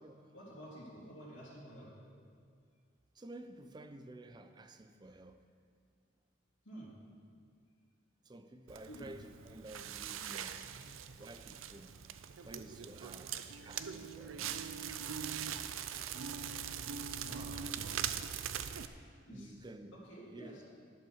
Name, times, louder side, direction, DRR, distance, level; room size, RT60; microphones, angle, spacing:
voice 1, 0.3-1.9 6.6-6.9 8.9-9.1 17.2-17.5 19.2-19.5 20.0-20.6, equal, 70° left, 3.2 m, -50 dB
voice 2, 3.2-5.4 8.3-10.6 11.2-11.9 12.4-13.4 13.6-14.5 19.3-20.0 20.3-20.6, right 1 dB, 20° right, 0.5 m, -52 dB
Crackle, 8.7-18.9, right 8 dB, 80° right, 0.5 m, -42 dB
11.0 x 7.5 x 6.4 m
head